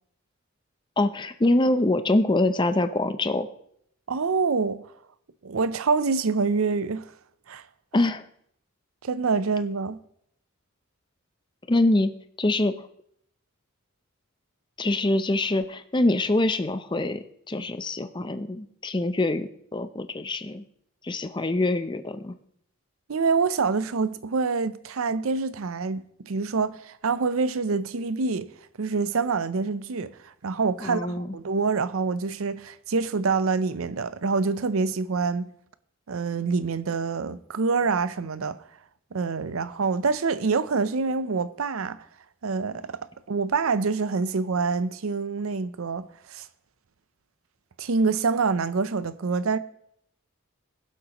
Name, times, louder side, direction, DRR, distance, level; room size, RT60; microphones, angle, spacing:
voice 1, 1.0-3.5 7.9-8.2 11.7-12.7 14.8-20.6 21.0-22.3 30.8-31.3, left 2 dB, 20° left, 0.5 m, -24 dB
voice 2, 4.1-4.9 5.4-7.1 7.5-7.6 9.0-10.0 23.1-28.5 28.8-35.5 36.1-38.6 39.1-42.0 42.4-43.0 43.3-46.5 47.8-49.6, right 4 dB, 75° right, 0.6 m, -26 dB
22.0 x 7.9 x 3.0 m
head